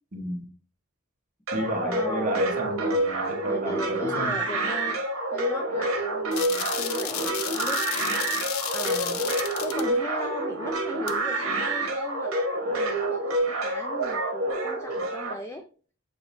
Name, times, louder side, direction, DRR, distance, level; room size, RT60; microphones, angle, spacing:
voice 1, 0.1-0.5 1.5-4.4, right 1 dB, 40° right, 0.9 m, -32 dB
sound 1, 1.5-15.3, right 2 dB, 70° right, 1.1 m, -28 dB
voice 2, 1.8-2.4 3.5-5.0 5.3-8.1 8.6-9.3 9.6-12.4 12.7-15.7, left 1 dB, 15° left, 0.4 m, -38 dB
sound 2, 6.3-9.9 11.1-11.2, left 11 dB, 70° left, 0.5 m, -33 dB
6.7 x 3.0 x 2.5 m
head